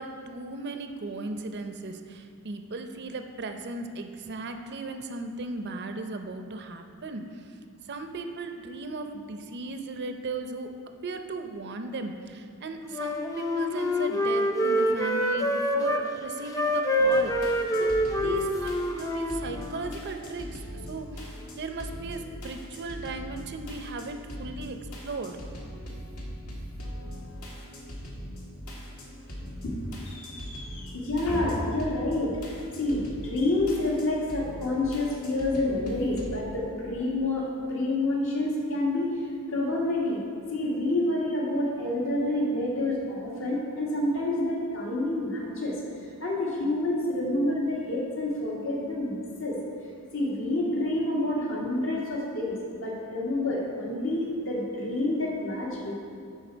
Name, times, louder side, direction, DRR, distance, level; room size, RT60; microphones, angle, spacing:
voice 1, 0.0-7.5 7.9-10.7 11.0-17.9 18.2-20.6 20.9-24.8 25.0-25.4, right 3 dB, 50° right, 6 dB, 0.6 m, -37 dB
Wind instrument woodwind instrument, 12.9-16.0 16.5-19.9, equal, 15° left, 0.5 m, -26 dB
sound 1, 17.0-36.4, equal, 80° left, 1.6 m, -41 dB
voice 2, 29.6-39.1 39.5-40.2 40.5-45.7 46.2-49.5 50.1-55.9, left 1 dB, 65° left, -4 dB, 1.8 m, -28 dB
12.0 x 4.6 x 4.5 m, 2.3 s
head